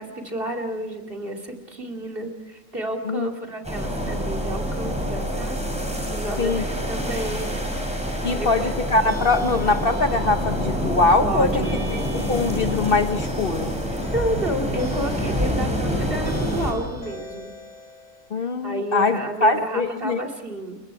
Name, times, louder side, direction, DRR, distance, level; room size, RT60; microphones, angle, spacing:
voice 1, 0.0-5.5 6.1-7.6 8.1-8.7 11.2-11.8 13.9-17.5 18.6-20.8, right 1 dB, 45° right, 2 dB, 2.9 m, -30 dB
sound 1, 3.6-16.7, equal, 5° right, 6.5 m, -27 dB
sound 2, 7.1-18.3, equal, 65° left, 6.8 m, -41 dB
voice 2, 8.2-13.8 18.3-20.2, left 3 dB, 50° left, 8 dB, 1.0 m, -22 dB
29.5 x 22.5 x 4.8 m, 1.2 s
omnidirectional pair, 1.3 m